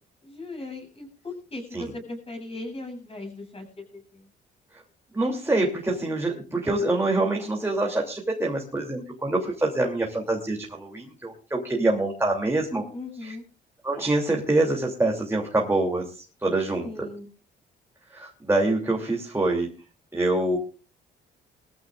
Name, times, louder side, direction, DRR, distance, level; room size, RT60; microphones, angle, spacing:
voice 1, 0.2-4.3 12.9-13.4 16.8-17.3, left 2 dB, 30° left, 3 dB, 7.9 m, -38 dB
voice 2, 5.1-12.8 13.2-13.3 13.8-17.1 18.1-19.7 20.1-20.6, right 2 dB, 10° right, -1 dB, 3.1 m, -25 dB
22.0 x 15.0 x 2.6 m, 0.36 s
cardioid pair, 90°, 20 cm